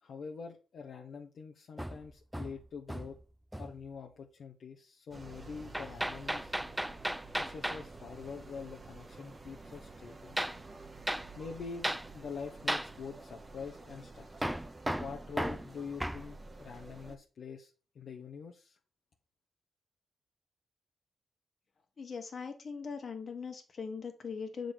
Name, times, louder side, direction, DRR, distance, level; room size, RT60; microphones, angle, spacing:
voice 1, 0.0-3.2 3.6-6.5 7.4-10.4 11.4-14.5 15.0-18.8, left 5 dB, 70° left, 0 dB, 0.8 m, -45 dB
Hammer, 1.8-3.2 3.5-3.9 5.7-7.9 10.4-10.6 11.1-11.3 11.8-12.1 12.7-12.9 14.4-16.3, right 1 dB, 5° right, 0.3 m, -35 dB
sound 1, 5.1-17.2, right 3 dB, 25° right, 0.8 m, -50 dB
voice 2, 22.0-24.7, left 5 dB, 50° left, 5 dB, 1.5 m, -40 dB
7.0 x 3.8 x 4.8 m, 0.34 s
cardioid pair, 115°, 0 cm